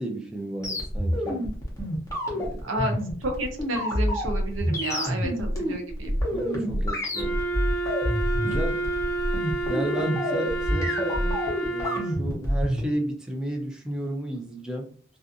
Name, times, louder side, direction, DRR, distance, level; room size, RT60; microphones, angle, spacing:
voice 1, 0.0-1.4 2.3-2.7 6.3-7.4 8.4-8.8 9.7-11.4 11.7-14.9, right 1 dB, 5° right, 0 dB, 0.4 m, -33 dB
sound 1, 0.6-12.8, equal, 15° left, 0.8 m, -27 dB
voice 2, 2.6-2.9 3.2-6.1, right 1 dB, 90° right, 4 dB, 0.7 m, -31 dB
Wind instrument woodwind instrument, 7.1-12.3, right 2 dB, 80° left, 0.6 m, -30 dB
2.5 x 2.4 x 2.6 m, 0.43 s
head